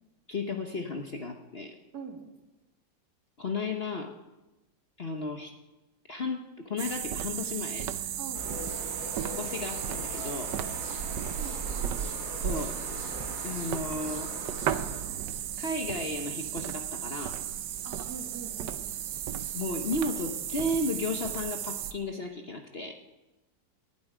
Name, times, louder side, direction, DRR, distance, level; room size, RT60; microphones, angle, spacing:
voice 1, 0.3-1.8 3.4-4.1 5.0-5.5 6.1-7.9 9.4-10.5 12.4-12.7 13.4-14.4 15.6-17.4 19.5-23.0, left 2 dB, 40° left, 4 dB, 1.0 m, -34 dB
voice 2, 1.9-2.3 8.2-8.8 10.9-11.8 17.8-18.9, right 5 dB, 60° right, 2 dB, 2.6 m, -44 dB
sound 1, 6.8-21.9, right 10 dB, 75° right, 1.3 m, -34 dB
sound 2, 8.3-15.0, left 2 dB, 75° left, 3.7 m, -41 dB
19.0 x 11.5 x 5.0 m, 1.1 s
omnidirectional pair, 2.0 m